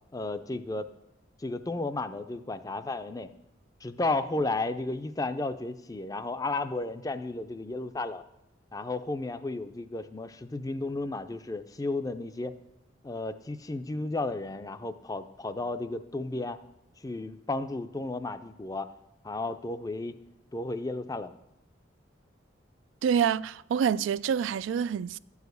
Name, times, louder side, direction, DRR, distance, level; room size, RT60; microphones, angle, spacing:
voice 1, 0.1-0.9 1.4-3.3 3.8-8.2 8.7-12.5 13.0-16.6 17.0-18.9 19.2-20.2 20.5-21.3, left 2 dB, 20° left, 0.4 m, -33 dB
voice 2, 23.0-25.2, right 8 dB, 90° right, 0.3 m, -27 dB
12.0 x 4.8 x 8.0 m
head